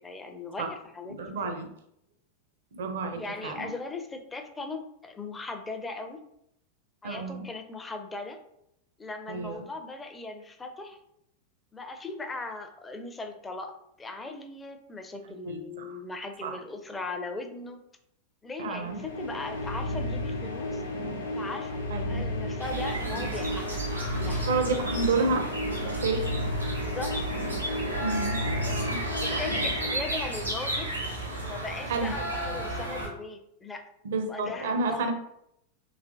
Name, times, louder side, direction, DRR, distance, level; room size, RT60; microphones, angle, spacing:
voice 1, 0.0-1.6 3.1-6.2 7.0-8.4 9.0-11.0 11.7-13.7 14.0-17.8 18.4-20.8 21.4-23.8 24.2-24.5 26.8-27.2 29.1-30.9 31.5-33.8 34.3-35.1, left 3 dB, 15° left, 6 dB, 0.4 m, -38 dB
voice 2, 1.1-1.7 2.7-3.7 7.0-7.4 9.3-9.6 15.5-16.0 16.4-16.5 18.6-19.0 21.9-22.3 24.5-25.5 25.7-26.2 28.0-28.4 28.7-29.0 29.3-29.4 31.9-32.1 34.0-35.1, right 3 dB, 60° right, 6 dB, 0.5 m, -30 dB
sound 1, 18.7-30.6, left 1 dB, 75° left, 0.8 m, -33 dB
sound 2, 22.6-33.1, right 2 dB, 85° right, 1.2 m, -33 dB
3.2 x 3.0 x 2.4 m, 0.77 s
figure-of-eight pair, 90°, 0 cm